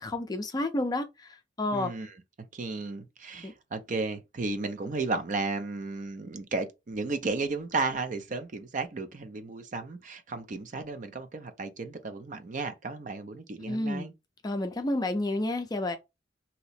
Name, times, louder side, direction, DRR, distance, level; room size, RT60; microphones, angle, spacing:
voice 1, 0.0-1.9 3.4-3.5 13.6-14.1 14.4-16.0, left 2 dB, 20° left, 0.4 m, -30 dB
voice 2, 1.7-2.1 2.5-14.1, right 3 dB, 40° right, 0.4 m, -34 dB
2.8 x 2.0 x 4.0 m
head